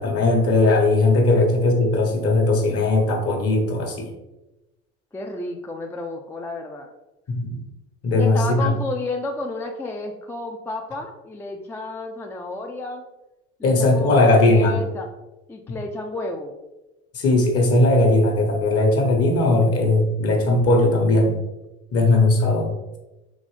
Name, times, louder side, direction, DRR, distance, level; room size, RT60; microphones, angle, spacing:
voice 1, 0.0-4.1 7.3-7.6 8.0-8.7 13.6-14.8 15.7-15.8 17.1-21.4 21.9-22.7, left 2 dB, 45° left, 2 dB, 1.1 m, -18 dB
voice 2, 5.1-6.9 8.1-13.0 13.6-15.1 15.5-16.5, left 2 dB, 10° left, 2 dB, 0.3 m, -31 dB
3.8 x 3.1 x 3.2 m, 1.0 s
hypercardioid pair, 75°, 34 cm